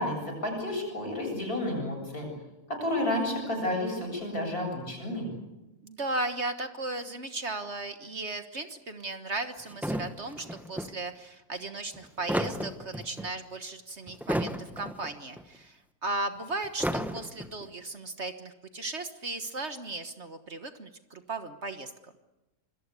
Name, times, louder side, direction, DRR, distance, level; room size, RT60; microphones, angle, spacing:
voice 1, 0.0-2.3 2.8-5.3, left 1 dB, 65° left, 1 dB, 8.5 m, -31 dB
voice 2, 5.8-22.1, right 2 dB, 45° right, 8 dB, 1.6 m, -36 dB
sound 1, 9.7-10.9 11.9-13.3 14.1-15.1 15.4-15.5 16.6-17.6, equal, ahead, 1.1 m, -32 dB
27.0 x 21.5 x 8.4 m, 1.0 s
omnidirectional pair, 1.7 m